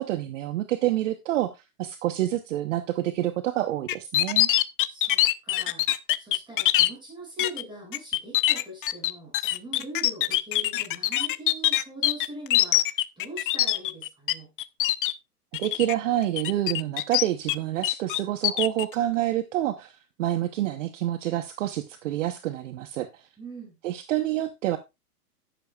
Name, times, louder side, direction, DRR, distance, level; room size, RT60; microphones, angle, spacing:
voice 1, 0.0-4.5 15.6-23.3 23.8-24.8, right 13 dB, 50° right, 11 dB, 0.9 m, -28 dB
sound 1, 3.9-6.9 7.4-7.6 7.9-14.3 14.6-15.1 15.5-15.9 16.4-17.6 17.8-18.8, left 15 dB, 35° left, 0.5 m, -23 dB
voice 2, 4.8-5.8 6.2-14.5 23.4-23.8, right 1 dB, 10° right, -1 dB, 6.4 m, -42 dB
11.0 x 10.0 x 2.3 m, 0.23 s
hypercardioid pair, 130°, 47 cm